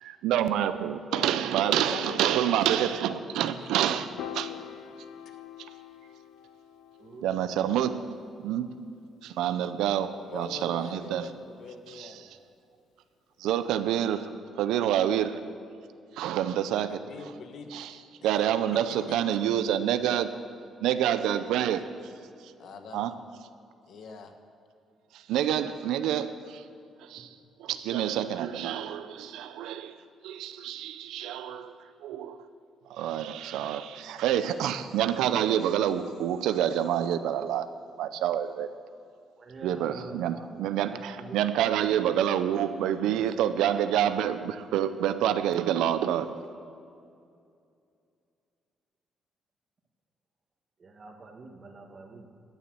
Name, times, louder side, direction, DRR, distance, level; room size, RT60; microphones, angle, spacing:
voice 1, 0.0-4.1 4.3-4.5 7.2-8.0 8.4-8.7 9.2-11.3 12.0-12.1 13.4-14.3 14.6-15.4 16.2-17.0 17.7-17.9 18.2-20.3 20.8-21.8 22.9-23.1 25.3-26.6 27.1-27.3 27.6-29.9 30.2-31.7 32.0-32.4 32.9-37.7 38.0-38.7 39.6-46.4, right 10 dB, 90° right, 11 dB, 0.5 m, -27 dB
voice 2, 1.6-4.6 10.2-12.3 16.9-17.7 18.2-18.3 18.7-19.2 22.6-23.1 23.9-24.3, left 4 dB, 70° left, 6 dB, 1.3 m, -44 dB
Piano, 4.2-10.6, left 10 dB, 85° left, 0.6 m, -46 dB
voice 3, 39.4-40.5 40.8-41.4 50.8-52.3, right 3 dB, 40° right, 3 dB, 1.8 m, -46 dB
13.0 x 7.2 x 7.7 m, 2.4 s
cardioid pair, 90°, 0 cm